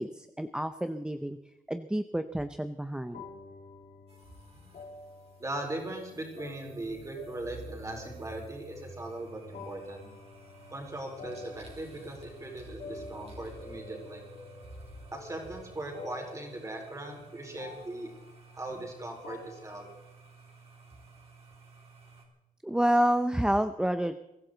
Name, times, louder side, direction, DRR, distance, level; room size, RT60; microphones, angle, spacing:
voice 1, 0.0-1.4 1.7-3.2 22.6-24.2, equal, 5° right, 10 dB, 0.5 m, -29 dB
sound 1, 3.1-19.8, left 3 dB, 75° left, 2.6 m, -49 dB
sound 2, 4.1-22.3, right 2 dB, 45° right, 4.0 m, -52 dB
voice 2, 5.4-10.0 10.7-14.2 15.1-18.1 18.5-19.9, right 1 dB, 20° right, 0 dB, 4.6 m, -39 dB
23.0 x 15.5 x 3.9 m, 0.96 s
wide cardioid pair, 170°, 14 cm